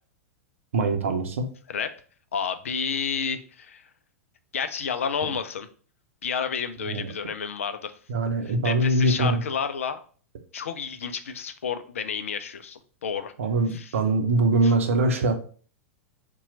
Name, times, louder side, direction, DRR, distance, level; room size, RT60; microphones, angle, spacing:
voice 1, 0.7-1.5 5.2-5.3 6.8-7.1 8.1-9.4 13.4-15.4, right 2 dB, 65° right, 6 dB, 0.6 m, -23 dB
voice 2, 2.3-3.9 4.5-5.7 6.2-7.9 8.5-10.0 10.5-13.3 13.7-13.9 14.6-14.7, left 6 dB, 65° left, 10 dB, 0.4 m, -30 dB
4.2 x 2.3 x 3.8 m, 0.42 s
figure-of-eight pair, 95°, 8 cm